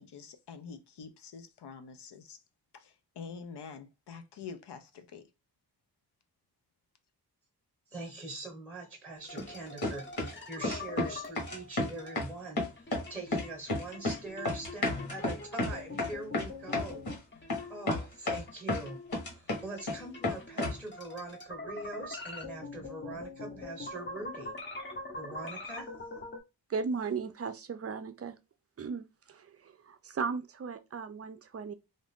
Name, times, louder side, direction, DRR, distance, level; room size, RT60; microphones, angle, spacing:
voice 1, 0.0-2.4 2.7-5.3, left 5 dB, 80° left, 0.6 m, -46 dB
voice 2, 7.9-17.1 17.7-24.6 25.1-25.9, right 2 dB, 5° right, 0.9 m, -43 dB
sound 1, 9.2-12.3 12.8-18.0 18.4-26.4, left 2 dB, 30° left, 0.7 m, -44 dB
sound 2, 9.4-9.5 9.8-10.4 10.6-11.1 11.4-12.3 12.6-13.1 13.3-14.2 14.4-17.2 17.5-17.6 17.9-18.8 19.1-20.0 20.2-20.8, left 2 dB, 65° left, 1.3 m, -31 dB
voice 3, 26.7-28.4 28.8-31.7, right 5 dB, 40° right, 0.4 m, -36 dB
2.6 x 2.4 x 3.5 m
wide cardioid pair, 120°, 40 cm